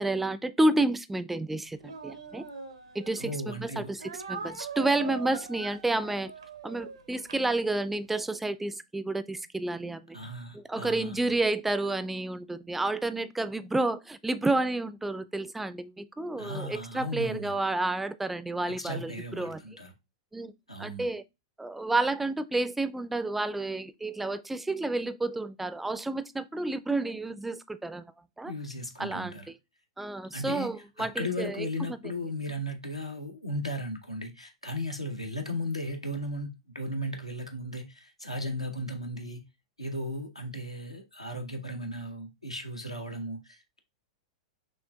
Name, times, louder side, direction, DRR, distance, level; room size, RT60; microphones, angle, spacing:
voice 1, 0.0-2.4 2.9-6.3 6.6-10.2 10.5-19.6 20.3-20.5 20.8-21.2 21.6-28.1 28.4-28.5 29.0-29.6 30.0-31.7, right 2 dB, 5° right, 0.3 m, -30 dB
Speech, 1.8-3.4 4.0-8.0, right 6 dB, 75° right, 0.6 m, -42 dB
voice 2, 3.2-3.9 10.1-11.4 16.4-17.6 18.8-19.9 20.7-21.1 28.5-29.5 30.3-30.7 31.0-39.4 39.8-43.8, equal, 90° left, 0.7 m, -36 dB
6.3 x 2.4 x 2.3 m
figure-of-eight pair, 95°, 3 cm